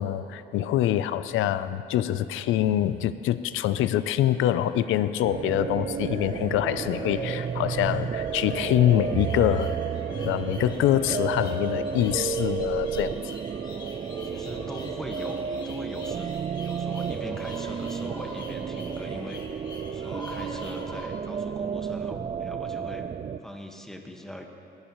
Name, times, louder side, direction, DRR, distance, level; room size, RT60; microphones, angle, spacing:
voice 1, 0.0-9.8 10.2-13.2, left 12 dB, 90° left, 13 dB, 0.5 m, -25 dB
sound 1, 4.3-21.1, equal, 20° left, 2.2 m, -43 dB
sound 2, 5.2-23.4, right 7 dB, 35° right, 0.4 m, -32 dB
voice 2, 14.2-16.3 16.6-23.1 23.4-24.4, equal, ahead, 2 dB, 1.5 m, -41 dB
19.5 x 15.5 x 3.1 m, 2.8 s
cardioid pair, 90°, 20 cm